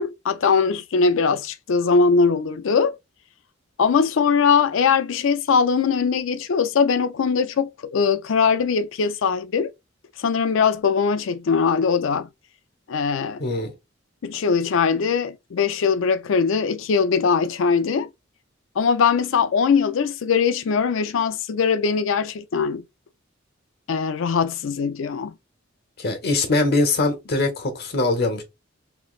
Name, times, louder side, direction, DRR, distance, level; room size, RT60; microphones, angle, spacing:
voice 1, 0.0-3.0 3.8-9.7 10.2-12.3 12.9-13.4 14.2-18.1 18.8-22.8 23.9-25.3, left 5 dB, 70° left, 0.4 m, -21 dB
voice 2, 13.4-13.7 26.0-28.4, left 2 dB, 55° left, 0.9 m, -22 dB
3.1 x 3.0 x 2.4 m
head